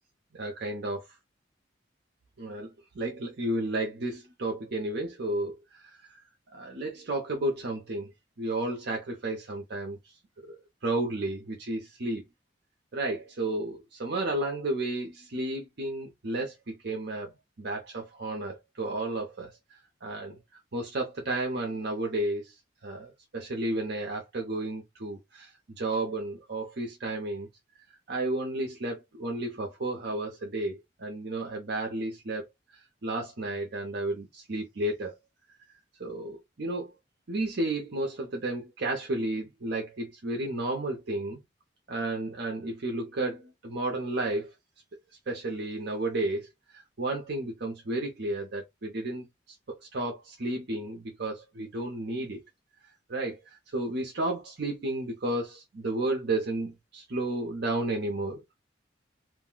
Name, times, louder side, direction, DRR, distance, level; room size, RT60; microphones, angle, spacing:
voice 1, 0.3-1.1 2.4-6.2 6.5-8.1 8.4-10.0 10.4-10.6 10.8-12.2 12.9-22.5 22.8-27.5 28.1-32.4 33.0-35.1 36.0-37.0 37.3-41.4 41.9-44.5 45.3-49.3 49.9-52.4 53.1-58.4, right 2 dB, 60° right, 0.8 m, -32 dB
2.6 x 2.2 x 3.7 m
head